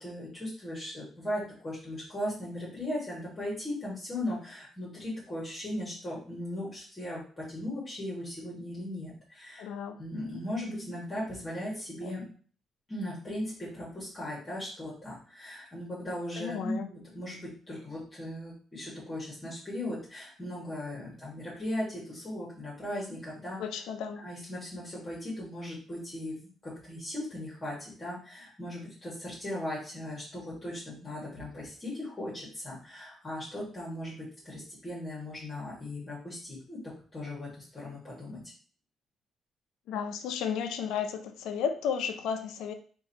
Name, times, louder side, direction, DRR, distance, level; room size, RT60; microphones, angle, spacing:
voice 1, 0.0-9.7 10.0-12.2 12.9-23.6 24.1-36.8 37.1-38.4, left 1 dB, 25° left, -6 dB, 1.8 m, -38 dB
voice 2, 9.6-10.0 12.0-12.1 16.4-16.9 23.6-24.3 39.9-42.7, left 7 dB, 85° left, 8 dB, 0.5 m, -33 dB
3.8 x 2.7 x 4.1 m, 0.43 s
cardioid pair, 90°, 0 cm